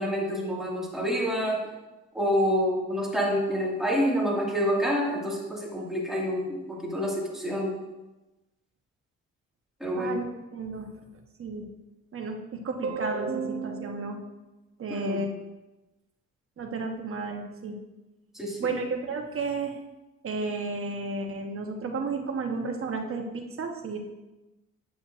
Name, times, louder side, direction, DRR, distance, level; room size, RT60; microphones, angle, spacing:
voice 1, 0.0-1.6 2.1-7.7 9.8-10.2 14.9-15.2 18.3-18.7, equal, ahead, -4 dB, 2.1 m, -27 dB
voice 2, 10.0-10.3 10.5-10.9 11.4-11.6 12.1-14.2 14.8-15.3 16.6-17.8 18.6-19.8 20.2-24.0, right 3 dB, 45° right, 3 dB, 1.2 m, -32 dB
9.4 x 6.9 x 2.6 m, 1.0 s
cardioid pair, 90°, 30 cm